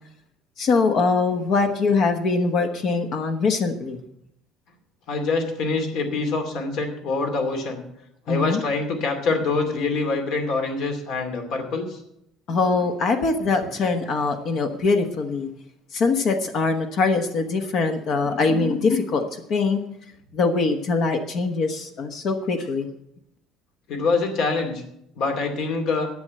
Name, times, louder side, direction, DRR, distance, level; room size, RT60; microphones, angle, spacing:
voice 1, 0.6-4.0 8.3-8.6 12.5-15.5 15.9-19.8 20.3-22.9, left 4 dB, 45° left, 6 dB, 1.1 m, -22 dB
voice 2, 5.1-7.8 8.3-12.0 23.9-24.8 25.2-26.1, left 3 dB, 60° left, 4 dB, 2.5 m, -25 dB
11.0 x 7.9 x 7.5 m, 0.78 s
cardioid pair, 155°, 0 cm